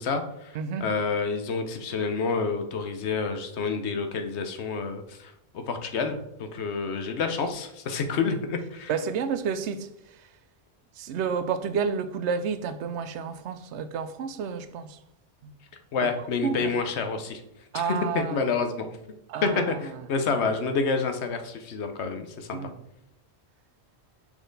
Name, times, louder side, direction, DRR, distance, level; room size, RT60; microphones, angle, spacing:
voice 1, 0.0-8.9 15.9-17.4 18.1-18.9 19.4-22.7, left 4 dB, 80° left, 1.1 m, -28 dB
voice 2, 0.5-0.9 8.9-10.4 10.9-15.0 15.4-15.5 16.0-16.1 16.4-16.8 17.7-18.4 19.3-20.1 22.5-22.7, right 6 dB, 90° right, 0.9 m, -30 dB
6.0 x 4.1 x 3.9 m
omnidirectional pair, 1.1 m